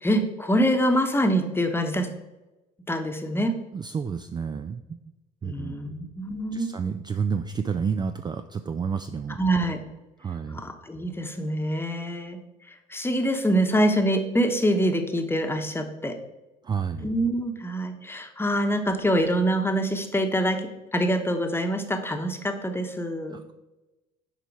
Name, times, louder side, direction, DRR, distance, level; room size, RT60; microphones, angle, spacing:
voice 1, 0.0-2.1 2.9-3.5 5.4-6.7 9.4-9.8 10.5-12.4 12.9-16.1 17.0-23.4, equal, 10° left, 5 dB, 1.0 m, -25 dB
voice 2, 3.7-5.0 5.4-5.9 6.5-9.4 10.2-10.6 16.6-17.1 23.3-23.5, right 6 dB, 20° right, 9 dB, 0.3 m, -30 dB
6.8 x 4.5 x 4.6 m, 1.0 s
hypercardioid pair, 65°, 20 cm